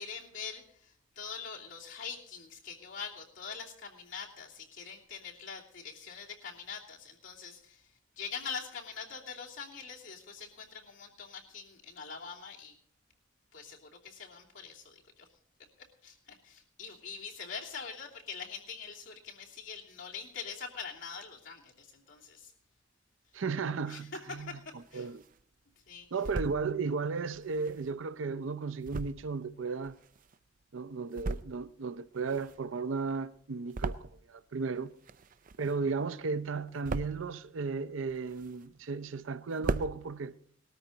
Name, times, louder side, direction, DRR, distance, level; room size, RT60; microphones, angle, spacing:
voice 1, 0.0-12.8 13.5-15.3 16.0-22.5 23.9-25.1 25.9-26.1, left 6 dB, 80° left, 2.9 m, -44 dB
voice 2, 23.3-25.2 26.1-30.0 30.7-34.9 35.6-40.4, right 4 dB, 90° right, 0.6 m, -35 dB
sound 1, 24.5-25.4 25.9-26.6 27.3-30.6 31.0-31.8 32.0-34.5 34.8-36.0 36.3-37.3 37.9-38.9 39.2-39.3 39.5-39.9, right 3 dB, 45° right, 0.5 m, -39 dB
19.0 x 13.0 x 4.0 m
head